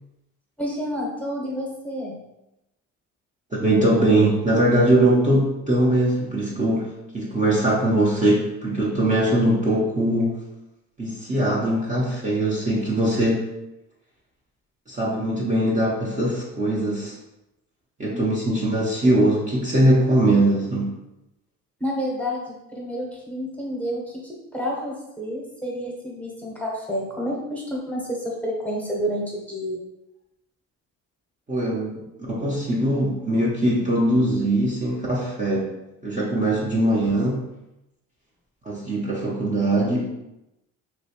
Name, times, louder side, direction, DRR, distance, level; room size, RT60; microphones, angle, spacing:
voice 1, 0.6-2.2 18.1-18.6 21.8-29.8, equal, 5° left, -3 dB, 1.0 m, -30 dB
voice 2, 3.5-10.4 11.0-13.5 14.9-17.1 18.0-20.9 31.5-32.0 32.3-35.7 36.0-37.5 38.6-40.1, right 1 dB, 20° right, -5 dB, 0.8 m, -21 dB
3.1 x 3.0 x 2.9 m, 0.91 s
supercardioid pair, 80°, 33 cm